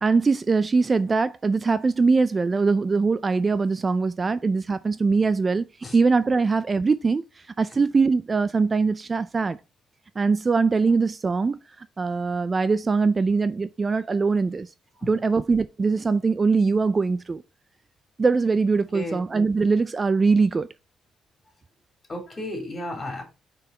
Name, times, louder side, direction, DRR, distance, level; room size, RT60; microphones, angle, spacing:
voice 1, 0.0-5.7 5.9-7.2 7.6-9.6 10.2-11.6 12.0-14.7 15.0-17.4 18.2-20.7, right 4 dB, 30° right, 0.4 m, -22 dB
voice 2, 18.9-19.2 22.1-23.2, left 1 dB, 30° left, 2.9 m, -33 dB
5.4 x 4.5 x 4.2 m
cardioid pair, 90°, 0 cm